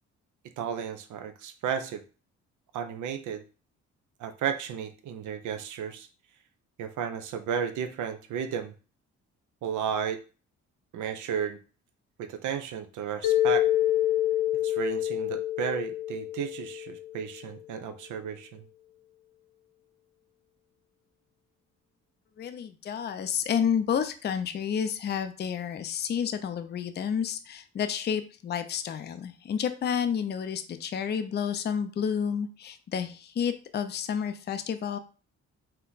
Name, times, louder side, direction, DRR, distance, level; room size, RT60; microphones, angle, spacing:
voice 1, 0.6-2.0 2.7-3.4 4.2-6.1 6.8-8.7 9.6-10.2 10.9-11.6 12.2-13.7 14.6-18.6, right 8 dB, 75° right, 8 dB, 0.7 m, -33 dB
Mallet percussion, 13.2-17.4, left 13 dB, 90° left, 0.5 m, -27 dB
voice 2, 22.4-35.0, left 7 dB, 35° left, 9 dB, 0.4 m, -30 dB
4.3 x 2.2 x 3.9 m, 0.36 s
cardioid pair, 90°, 30 cm